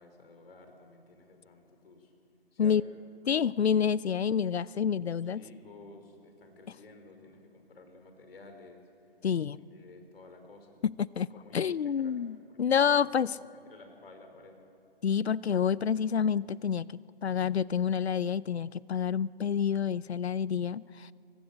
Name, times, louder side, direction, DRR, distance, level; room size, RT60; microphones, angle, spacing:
voice 1, 0.0-2.2 2.5-2.9 5.2-10.8 11.3-14.7, left 3 dB, 65° left, 5 dB, 4.9 m, -53 dB
voice 2, 3.3-5.4 9.2-9.6 10.8-11.3 11.5-13.4 15.0-21.1, left 7 dB, 85° left, 21 dB, 0.7 m, -28 dB
24.0 x 20.5 x 8.5 m, 2.4 s
hypercardioid pair, 150°, 31 cm